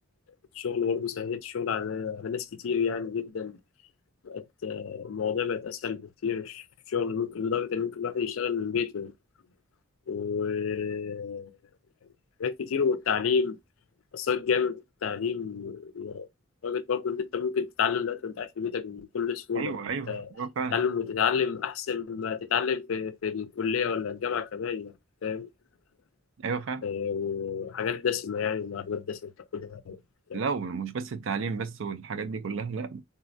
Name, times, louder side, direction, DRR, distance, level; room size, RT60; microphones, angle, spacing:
voice 1, 0.5-3.6 4.2-9.1 10.1-11.6 12.4-13.6 14.1-16.3 16.6-19.8 20.1-20.3 20.7-24.9 25.2-25.5 26.8-30.0 30.3-30.4, left 6 dB, 80° left, 0.4 m, -30 dB
voice 2, 19.5-20.8 26.4-26.8 30.3-33.0, right 5 dB, 65° right, 0.4 m, -32 dB
3.6 x 2.1 x 2.5 m
head